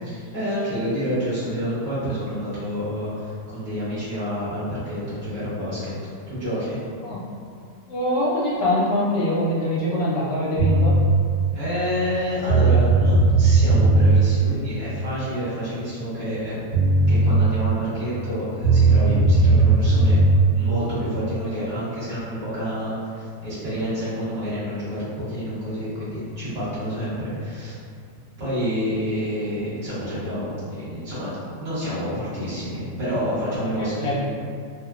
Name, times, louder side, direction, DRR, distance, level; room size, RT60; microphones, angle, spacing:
voice 1, 0.0-5.9 6.3-6.8 11.5-16.5 17.1-20.2 20.5-27.8 28.4-34.2, equal, 50° right, -13 dB, 1.4 m, -28 dB
voice 2, 7.8-10.9 33.8-34.2, left 1 dB, 80° left, -6 dB, 1.3 m, -23 dB
sound 1, 10.6-11.1 12.1-12.2 12.5-14.1 16.4-16.5 16.7-17.4 18.6-20.4, right 2 dB, 40° left, 0.8 m, -17 dB
3.2 x 2.1 x 2.4 m, 2.3 s
omnidirectional pair, 1.9 m